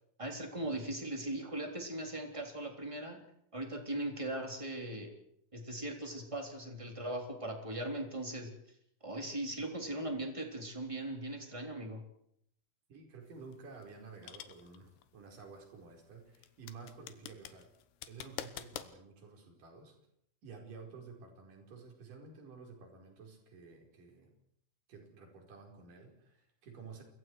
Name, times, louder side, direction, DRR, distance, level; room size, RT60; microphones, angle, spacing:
voice 1, 0.2-3.2 3.5-5.1 5.5-8.5 9.0-12.0, right 1 dB, 10° right, 3 dB, 2.7 m, -39 dB
voice 2, 12.9-17.7 18.1-20.0 20.4-24.3 24.9-27.0, right 4 dB, 45° right, 2 dB, 6.1 m, -52 dB
sound 1, 13.3-18.9, left 12 dB, 70° left, 2.9 m, -48 dB
29.0 x 24.5 x 4.8 m, 0.72 s
omnidirectional pair, 5.7 m